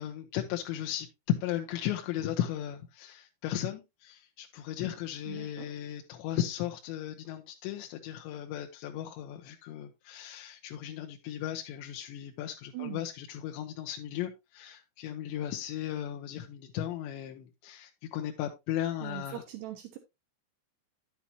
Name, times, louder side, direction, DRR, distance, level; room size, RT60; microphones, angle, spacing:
voice 1, 0.0-19.4, left 11 dB, 75° left, 2.8 m, -36 dB
voice 2, 5.3-5.7 12.7-13.0 19.0-20.0, right 14 dB, 80° right, 2.4 m, -41 dB
10.5 x 8.5 x 2.8 m
omnidirectional pair, 6.0 m